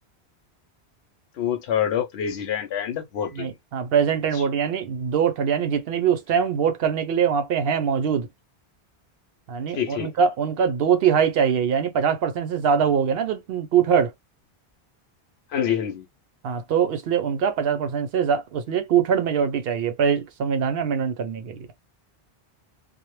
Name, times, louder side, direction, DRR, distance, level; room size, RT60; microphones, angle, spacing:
voice 1, 1.4-3.5 9.7-10.1 15.5-16.1, left 9 dB, 75° left, 0.8 m, -26 dB
voice 2, 3.3-8.3 9.5-14.1 16.4-21.7, right 7 dB, 65° right, 0.7 m, -23 dB
2.1 x 2.0 x 3.0 m
omnidirectional pair, 1.1 m